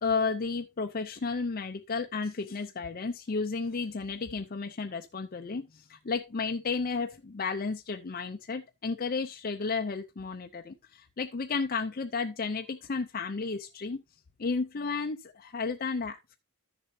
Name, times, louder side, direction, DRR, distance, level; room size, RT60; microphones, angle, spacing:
voice 1, 0.0-14.0 14.4-16.4, left 4 dB, 40° left, 0.5 m, -33 dB
13.5 x 6.9 x 2.8 m
head